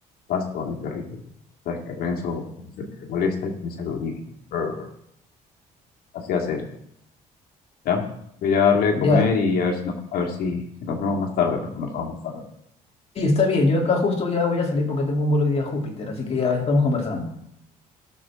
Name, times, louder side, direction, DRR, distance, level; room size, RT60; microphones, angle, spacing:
voice 1, 0.3-1.2 1.7-4.1 4.5-4.9 6.1-6.7 7.8-8.1 8.4-12.4, left 5 dB, 70° left, 1 dB, 2.3 m, -25 dB
voice 2, 13.1-17.3, left 3 dB, 40° left, 0 dB, 3.0 m, -22 dB
18.0 x 7.0 x 3.7 m, 0.75 s
cardioid pair, 95°, 16 cm